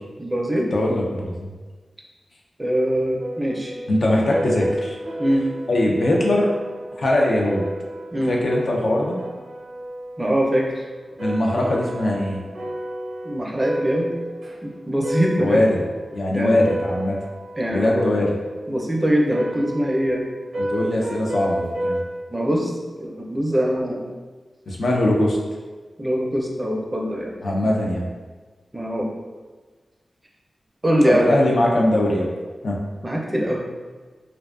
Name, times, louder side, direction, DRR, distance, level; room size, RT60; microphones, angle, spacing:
voice 1, 0.2-0.7 2.6-3.7 5.2-5.5 8.1-8.3 10.2-10.8 13.2-14.2 14.6-15.6 16.3-16.6 17.6-18.1 18.7-20.2 22.3-22.7 23.0-24.0 26.0-27.4 28.7-29.1 30.8-31.3 33.0-33.6, equal, 25° right, -1 dB, 0.4 m, -22 dB
voice 2, 0.7-1.5 3.9-5.0 5.7-6.5 7.0-7.7 8.3-9.2 11.2-12.4 15.4-15.8 16.1-17.2 17.7-18.3 20.6-22.0 24.7-25.4 27.4-28.0 31.0-32.3 32.6-32.8, left 1 dB, 70° left, -2 dB, 0.4 m, -21 dB
sound 1, 3.2-16.2 16.5-18.6 19.3-22.0, right 1 dB, 75° right, 0.5 m, -31 dB
2.4 x 2.2 x 2.3 m, 1.3 s
cardioid pair, 60°, 0 cm